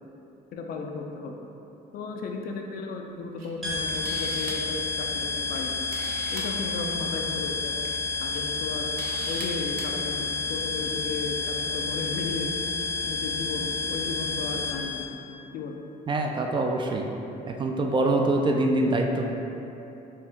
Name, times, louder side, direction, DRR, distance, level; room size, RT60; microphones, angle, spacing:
voice 1, 0.5-1.4 1.9-5.7 6.3-7.9 8.2-8.9 9.3-12.5 13.0-15.2 15.5-15.8, left 4 dB, 60° left, 2 dB, 0.5 m, -35 dB
Camera, 3.4-3.5 3.9-4.7 5.6-5.7 5.9-6.5 7.6-7.9 8.3-8.4 9.0-9.5 9.8-9.9, right 3 dB, 55° right, 0.7 m, -38 dB
sound 1, 3.6-15.0, left 4 dB, ahead, 0.7 m, -30 dB
voice 2, 16.1-17.0 17.5-19.2, right 2 dB, 30° right, 2 dB, 0.3 m, -24 dB
4.4 x 2.5 x 3.6 m, 2.9 s
cardioid pair, 110°, 17 cm